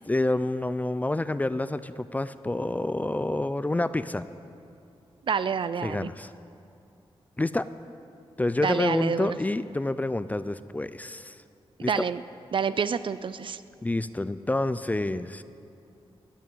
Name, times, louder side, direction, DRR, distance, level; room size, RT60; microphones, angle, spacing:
voice 1, 0.1-4.2 5.8-6.3 7.4-7.7 8.4-11.4 11.8-11.9 13.8-15.4, left 2 dB, 15° left, 14 dB, 0.4 m, -28 dB
voice 2, 5.3-6.1 8.6-9.4 11.9-12.2 12.5-13.6, right 6 dB, 55° right, 14 dB, 0.4 m, -28 dB
13.5 x 9.4 x 9.0 m, 2.6 s
wide cardioid pair, 125°, 10 cm